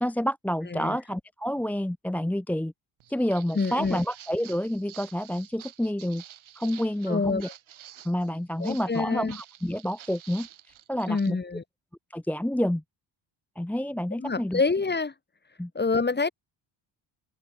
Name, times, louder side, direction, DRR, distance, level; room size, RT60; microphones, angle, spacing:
voice 1, 0.0-2.7 3.1-6.2 6.6-7.5 8.0-10.5 10.9-11.4 12.1-12.8 13.6-14.6 15.6-15.7, equal, 5° left, 0.6 m, -28 dB
Walk footsteps, 3.0-11.3, right 12 dB, 75° right, 5.6 m, -49 dB
voice 2, 3.5-4.0 7.1-7.4 8.6-9.4 11.1-11.6 14.2-15.1 15.8-16.3, left 4 dB, 20° left, 1.8 m, -27 dB
open air
cardioid pair, 85°, 48 cm